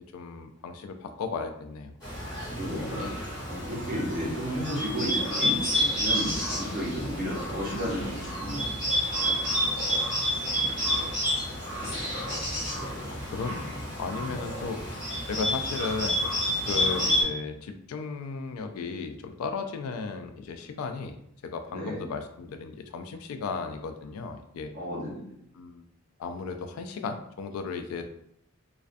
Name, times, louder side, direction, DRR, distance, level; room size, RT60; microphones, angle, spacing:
voice 1, 0.1-2.0 11.3-12.0 13.1-16.3 16.6-21.2 21.4-24.8 25.5-25.9 26.2-28.1, left 4 dB, 85° left, 8 dB, 0.3 m, -35 dB
Bird, 2.0-17.2, equal, 20° left, 1.1 m, -29 dB
voice 2, 2.5-3.1 3.5-8.7 9.2-10.0 10.3-11.1 12.8-12.9 16.7-16.8 21.7-22.0 24.7-25.3, equal, 40° right, -3 dB, 0.8 m, -34 dB
2.3 x 2.2 x 2.5 m, 0.71 s
head